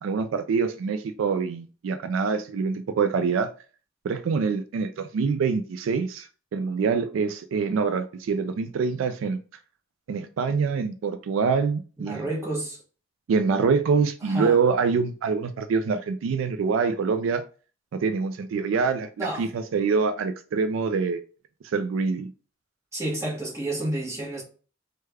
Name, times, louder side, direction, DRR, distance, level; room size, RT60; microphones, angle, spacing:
voice 1, 0.0-3.5 4.0-9.4 10.1-12.2 13.3-17.4 17.9-21.2 21.7-22.3, right 5 dB, 75° right, 0.3 m, -25 dB
voice 2, 12.0-12.8 14.2-14.6 19.2-19.5 22.9-24.4, right 1 dB, 15° right, 1.1 m, -30 dB
3.3 x 2.2 x 3.3 m
head